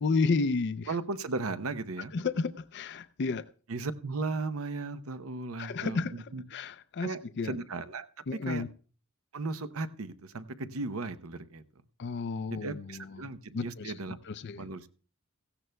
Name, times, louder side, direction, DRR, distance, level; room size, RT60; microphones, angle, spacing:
voice 1, 0.0-0.9 2.1-3.5 5.6-7.5 8.3-8.7 12.0-13.2 13.5-13.9 14.3-14.6, left 4 dB, 55° left, 0.4 m, -32 dB
voice 2, 0.9-2.1 3.7-6.4 7.0-8.1 8.5-8.6 9.3-11.6 12.5-14.2 14.6-14.9, right 3 dB, 80° right, 0.8 m, -36 dB
17.0 x 15.0 x 2.2 m
head